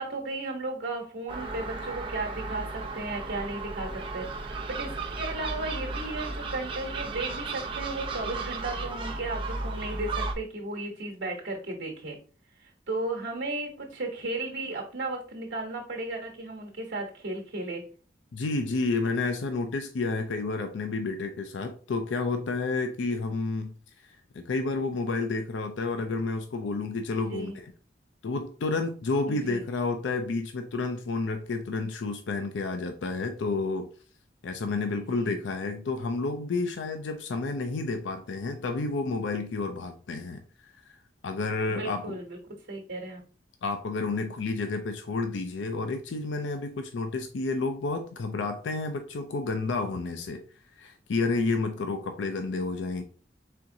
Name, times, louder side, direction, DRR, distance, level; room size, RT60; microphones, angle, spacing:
voice 1, 0.0-12.2 12.6-17.8 27.3-27.6 29.3-29.6 35.3-35.4 41.7-42.4 42.7-43.2, right 2 dB, 90° right, 1.1 m, -35 dB
Gull seagull, 1.3-10.3, right 3 dB, 30° right, 0.7 m, -35 dB
voice 2, 18.3-23.7 24.3-27.7 28.2-33.9 34.4-40.4 40.8-41.0 41.2-42.2 43.6-50.4 50.8-53.0, left 3 dB, 90° left, 0.5 m, -30 dB
4.4 x 3.6 x 2.6 m
head